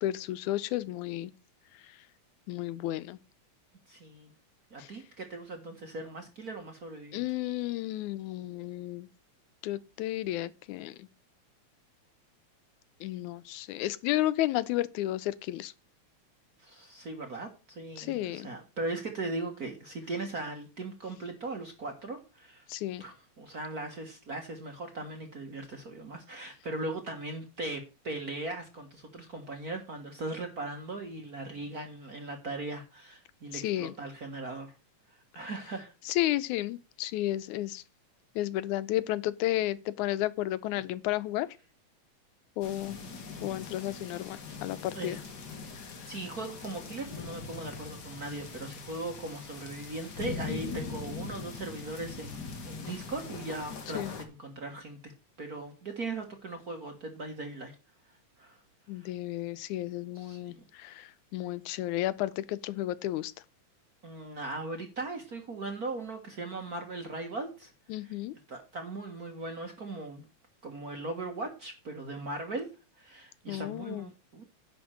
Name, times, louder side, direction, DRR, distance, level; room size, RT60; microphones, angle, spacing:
voice 1, 0.0-1.3 1.8-2.0 2.5-3.2 4.8-4.9 7.1-9.1 9.6-11.1 13.0-15.7 18.0-18.5 22.7-23.0 33.5-33.9 36.1-37.8 38.4-41.5 42.6-43.0 43.4-45.2 45.8-45.9 50.5-50.8 53.9-54.1 58.9-63.3 67.9-68.3 73.5-74.1, left 15 dB, 85° left, 2.1 m, -32 dB
voice 2, 3.9-4.3 4.7-7.2 16.6-22.7 23.0-34.7 35.1-35.9 44.9-45.2 46.1-55.1 55.4-57.7 58.4-58.6 58.9-59.1 60.1-60.7 64.0-67.7 68.0-68.2 68.5-70.2 70.6-72.7 73.0-74.4, right 2 dB, 40° right, 1.4 m, -39 dB
sound 1, 42.6-54.2, left 4 dB, 45° left, 1.6 m, -42 dB
10.5 x 4.3 x 7.5 m
omnidirectional pair, 3.4 m